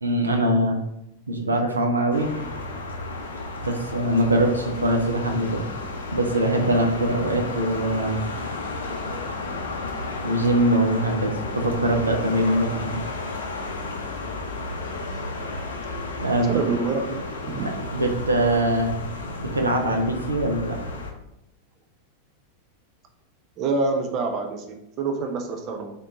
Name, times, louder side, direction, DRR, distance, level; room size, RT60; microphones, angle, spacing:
voice 1, 0.0-0.8 1.3-2.3 3.6-5.6 6.1-8.2 10.2-13.0 16.2-16.5 17.6-19.0 19.4-20.8, right 1 dB, 80° right, 2 dB, 0.6 m, -22 dB
sound 1, 2.1-21.1, left 2 dB, 65° left, 0.6 m, -33 dB
voice 2, 16.5-17.7 23.6-25.9, right 4 dB, 35° right, 4 dB, 0.6 m, -27 dB
3.7 x 3.6 x 4.0 m, 0.84 s
figure-of-eight pair, 90°, 0 cm